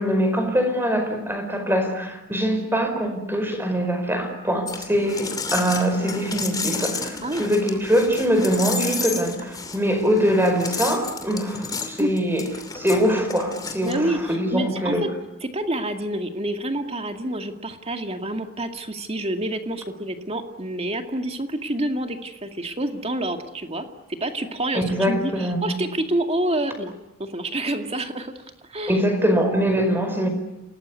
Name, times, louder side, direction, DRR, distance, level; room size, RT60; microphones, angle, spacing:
voice 1, 0.0-12.4 12.7-15.1 24.7-25.8 28.9-30.3, equal, 10° right, 6 dB, 5.1 m, -23 dB
sound 1, 4.7-14.4, left 4 dB, 15° left, 2.7 m, -32 dB
voice 2, 13.8-15.1 15.4-26.9 27.2-28.3 28.7-29.0, right 1 dB, 30° right, 6 dB, 2.2 m, -28 dB
28.5 x 19.0 x 9.7 m, 0.94 s
head